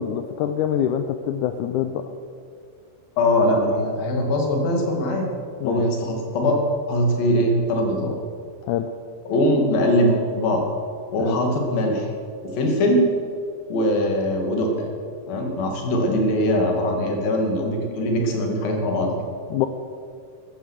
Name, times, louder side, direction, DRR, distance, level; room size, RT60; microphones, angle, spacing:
voice 1, 0.0-2.0 5.6-5.9 8.7-8.9 11.2-11.4 19.5-19.7, left 10 dB, 90° left, 8 dB, 1.7 m, -25 dB
voice 2, 3.2-5.3 5.6-6.6 6.9-8.1 9.3-10.7 11.1-12.1 12.4-13.0 13.7-14.9 15.3-19.2, left 1 dB, 75° left, 2 dB, 4.0 m, -21 dB
14.5 x 12.5 x 6.4 m, 2.3 s
omnidirectional pair, 4.2 m